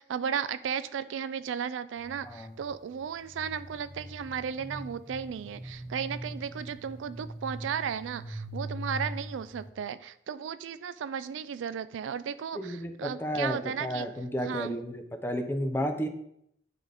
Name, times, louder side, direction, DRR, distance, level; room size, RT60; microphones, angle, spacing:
voice 1, 0.0-14.1 14.4-14.8, right 7 dB, 80° right, 14 dB, 0.3 m, -35 dB
sound 1, 1.9-9.7, equal, 20° right, 1.5 m, -42 dB
voice 2, 2.2-2.5 12.5-16.1, equal, 10° left, 6 dB, 0.6 m, -32 dB
9.5 x 3.8 x 3.5 m, 0.74 s
head